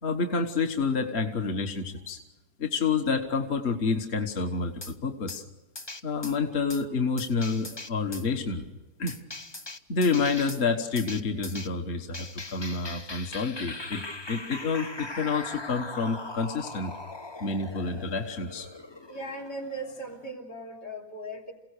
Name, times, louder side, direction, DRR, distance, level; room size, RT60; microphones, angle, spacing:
voice 1, 0.0-2.2 2.6-5.4 6.0-8.7 9.0-9.2 9.9-16.9 17.4-18.7, left 4 dB, 40° left, 5 dB, 1.5 m, -28 dB
sound 1, 4.8-4.9 5.3-5.4 5.8-6.4 6.7-6.8 7.2-8.3 9.1-10.6 11.0-11.7 12.1-20.3, left 2 dB, 20° left, 0.7 m, -40 dB
voice 2, 19.0-21.5, right 1 dB, 80° left, 5 dB, 3.5 m, -38 dB
28.0 x 17.0 x 6.6 m, 1.1 s
omnidirectional pair, 1.8 m